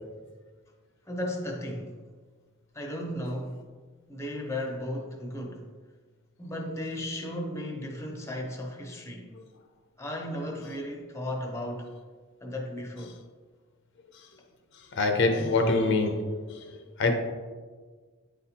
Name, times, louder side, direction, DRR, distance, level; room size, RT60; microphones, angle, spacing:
voice 1, 1.1-2.0 2.7-3.7 4.1-5.7 6.4-9.3 10.0-11.9 12.4-13.2, left 1 dB, 15° left, 2 dB, 0.6 m, -35 dB
voice 2, 15.0-16.6 17.0-17.1, left 3 dB, 55° left, 4 dB, 0.6 m, -24 dB
8.5 x 4.1 x 2.8 m, 1.5 s
head